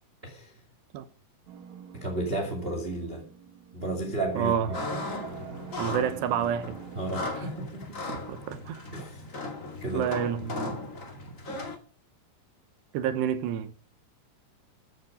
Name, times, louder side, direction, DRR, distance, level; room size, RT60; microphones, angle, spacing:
sound 1, 1.5-7.3, right 8 dB, 55° right, 2.3 m, -44 dB
voice 1, 1.9-3.2 3.7-4.5 6.9-8.0 8.9-9.2 9.8-10.1, right 2 dB, 25° right, 1.4 m, -32 dB
voice 2, 4.4-4.7 5.8-6.8 8.3-8.8 9.9-10.8 12.9-13.7, right 8 dB, 80° right, 3.2 m, -28 dB
sound 2, 4.7-11.8, left 2 dB, 40° left, 1.1 m, -37 dB
14.5 x 9.7 x 5.2 m
omnidirectional pair, 5.1 m